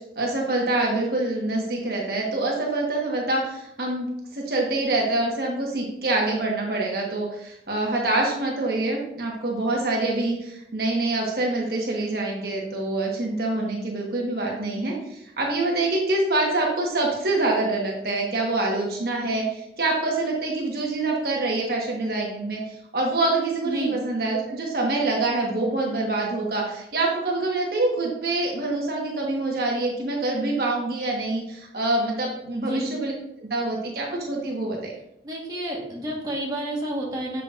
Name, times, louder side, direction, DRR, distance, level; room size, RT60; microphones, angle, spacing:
voice 1, 0.1-33.1 33.4-34.9, right 2 dB, 55° right, -2 dB, 1.3 m, -25 dB
voice 2, 23.6-24.0 32.6-32.9 35.2-37.4, equal, 20° right, -4 dB, 1.4 m, -30 dB
7.1 x 6.6 x 2.5 m, 0.80 s
head